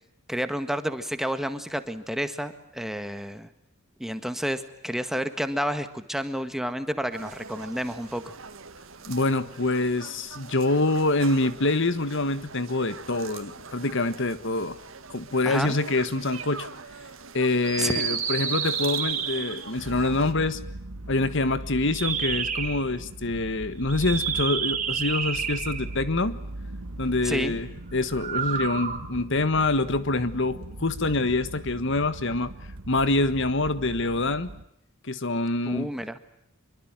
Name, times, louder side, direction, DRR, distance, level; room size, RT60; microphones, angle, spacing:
voice 1, 0.3-3.5 4.0-8.3 15.4-15.8 17.8-18.0 27.2-27.5 35.7-36.2, equal, ahead, 9 dB, 1.7 m, -30 dB
sound 1, 7.1-20.3, right 4 dB, 65° right, 2.2 m, -43 dB
voice 2, 9.1-14.8 15.1-16.7 17.3-20.6 21.1-26.4 27.0-32.5 32.9-34.5 35.0-35.9, left 2 dB, 60° left, 13 dB, 1.5 m, -26 dB
sound 2, 17.6-19.8 21.8-22.8 23.8-26.0 28.1-29.0, right 7 dB, 35° right, 3.7 m, -29 dB
sound 3, 19.8-34.6, right 1 dB, 85° right, 1.4 m, -40 dB
26.0 x 23.5 x 9.0 m, 0.77 s
head